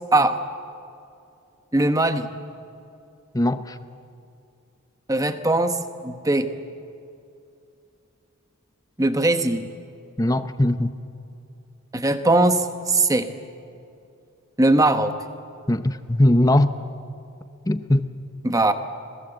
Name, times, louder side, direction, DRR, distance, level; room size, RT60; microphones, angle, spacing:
voice 1, 1.7-2.3 5.1-5.8 6.0-6.5 9.0-9.7 11.9-13.3 14.6-15.1 18.4-18.7, right 2 dB, 15° right, 1.1 m, -20 dB
voice 2, 3.3-3.8 10.2-10.9 15.7-16.7 17.6-18.1, left 1 dB, 15° left, 0.7 m, -20 dB
26.5 x 21.0 x 8.0 m
head